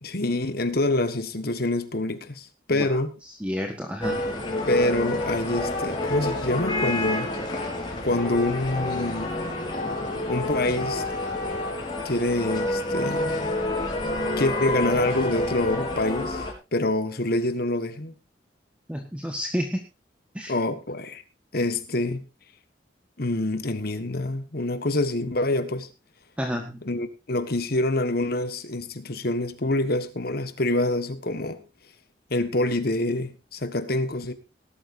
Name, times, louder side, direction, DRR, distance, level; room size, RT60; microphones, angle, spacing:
voice 1, 0.0-3.1 4.7-7.3 8.0-9.3 10.3-11.0 12.0-13.3 14.4-18.1 20.5-21.2 21.5-22.2 23.2-25.9 26.8-31.6 32.3-34.3, left 2 dB, 55° left, 1.6 m, -26 dB
voice 2, 2.7-4.2 18.9-19.8 20.3-20.6 26.4-26.8, equal, 5° right, 1.4 m, -31 dB
sound 1, 4.0-16.5, left 1 dB, 25° left, 4.7 m, -28 dB
19.0 x 12.5 x 2.7 m
head